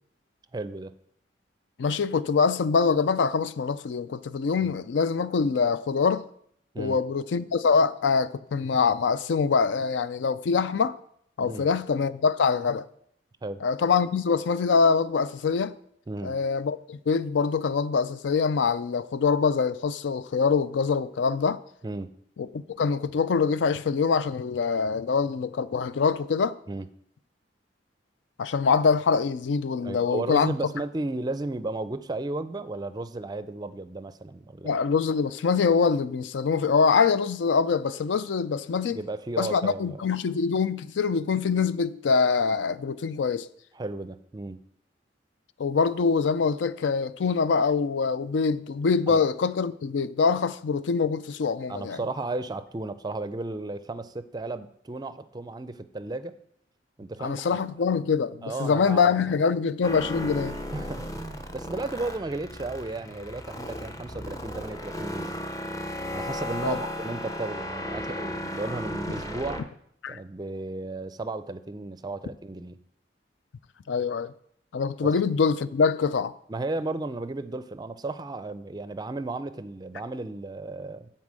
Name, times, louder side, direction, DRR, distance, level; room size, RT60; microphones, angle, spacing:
voice 1, 0.5-0.9 4.6-4.7 6.7-7.0 11.4-11.7 13.4-13.6 16.1-16.4 21.8-22.1 26.7-26.9 29.8-34.8 38.9-40.0 43.7-44.6 49.1-49.2 51.7-56.3 57.0-57.6 58.4-59.4 60.7-65.5 66.1-69.6 70.1-72.8 75.0-75.1 76.5-81.1, right 2 dB, 20° right, 0.4 m, -34 dB
voice 2, 1.8-6.2 6.8-11.0 11.4-12.8 13.6-15.7 16.2-21.6 22.4-26.6 28.4-30.5 34.6-39.0 39.4-43.5 45.6-52.0 57.2-60.6 66.6-66.8 70.0-70.2 73.9-74.3 74.7-76.3, left 5 dB, 80° left, 0.4 m, -24 dB
sound 1, 59.8-69.6, left 1 dB, 20° left, 0.7 m, -35 dB
9.6 x 4.4 x 7.5 m
head